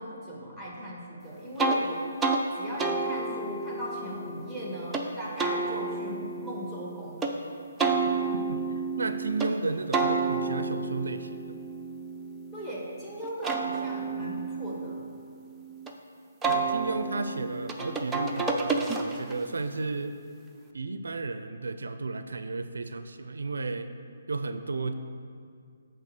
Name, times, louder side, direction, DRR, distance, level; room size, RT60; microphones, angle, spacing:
voice 1, 0.0-2.1 2.6-7.4 12.5-15.0, equal, 10° left, -6 dB, 1.8 m, -38 dB
sound 1, 1.6-1.8 2.2-2.4 2.8-5.0 5.4-7.3 7.8-9.5 9.9-12.8 13.2-15.9 16.4-19.4, right 3 dB, 10° right, 0.5 m, -30 dB
voice 2, 8.5-11.6 16.5-20.2 20.7-23.9 24.3-24.9, right 3 dB, 80° right, 9 dB, 0.4 m, -33 dB
8.4 x 3.5 x 6.6 m, 2.3 s
hypercardioid pair, 150°, 0 cm